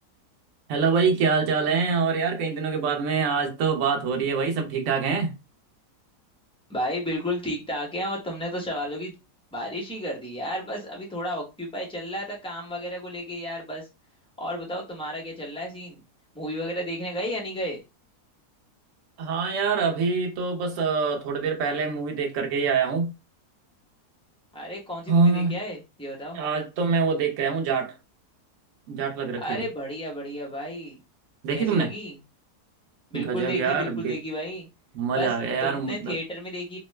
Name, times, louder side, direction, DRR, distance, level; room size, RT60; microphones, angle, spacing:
voice 1, 0.7-5.3 19.2-23.1 25.1-25.6 26.3-28.0 28.9-29.7 31.4-31.9 33.1-34.2 34.9-36.2, right 5 dB, 60° right, 1.0 m, -25 dB
voice 2, 6.7-9.1 9.5-13.9 14.4-16.0 16.3-17.8 24.5-26.4 29.4-31.0 31.5-32.2 33.1-34.7 35.1-35.3 35.6-36.8, equal, 5° left, 0.5 m, -32 dB
2.9 x 2.1 x 3.1 m
omnidirectional pair, 1.7 m